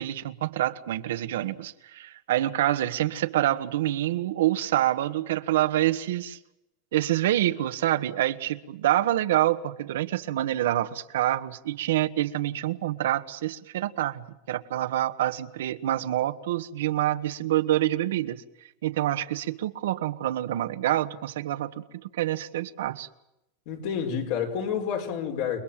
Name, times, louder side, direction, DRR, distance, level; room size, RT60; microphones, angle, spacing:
voice 1, 0.0-6.4 6.9-18.4 18.8-23.1, right 13 dB, 90° right, 1.5 m, -27 dB
voice 2, 23.7-25.6, left 7 dB, 60° left, 5.6 m, -29 dB
29.5 x 21.0 x 7.6 m
supercardioid pair, 145°, 0 cm